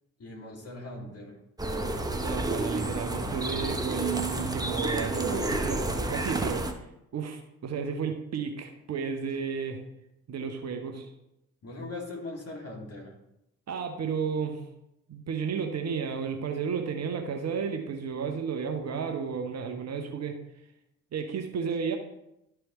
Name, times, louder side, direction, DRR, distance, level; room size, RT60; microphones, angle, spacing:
voice 1, 0.2-1.4 11.6-13.2, left 2 dB, 40° left, -1 dB, 2.4 m, -40 dB
sound 1, 1.6-6.7, right 2 dB, 10° right, 0.9 m, -30 dB
voice 2, 2.2-6.7 7.1-9.8 10.3-11.1 13.7-14.6 15.1-20.4 21.1-22.0, right 6 dB, 40° right, 4 dB, 1.0 m, -32 dB
12.0 x 4.8 x 3.1 m, 0.84 s
figure-of-eight pair, 45°, 39 cm